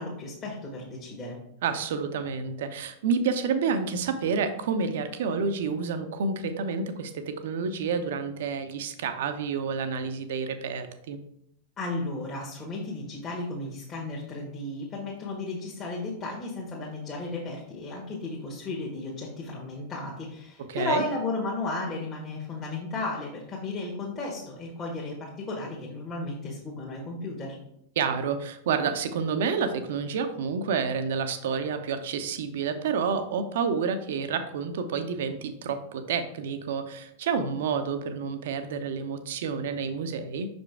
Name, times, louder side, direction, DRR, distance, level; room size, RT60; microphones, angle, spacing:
voice 1, 0.0-1.4 11.8-27.6, left 2 dB, 25° left, -5 dB, 1.5 m, -34 dB
voice 2, 1.6-11.2 20.7-21.0 28.0-40.5, right 5 dB, 55° right, 9 dB, 0.7 m, -29 dB
6.1 x 5.2 x 3.4 m, 0.73 s
figure-of-eight pair, 90°, 0 cm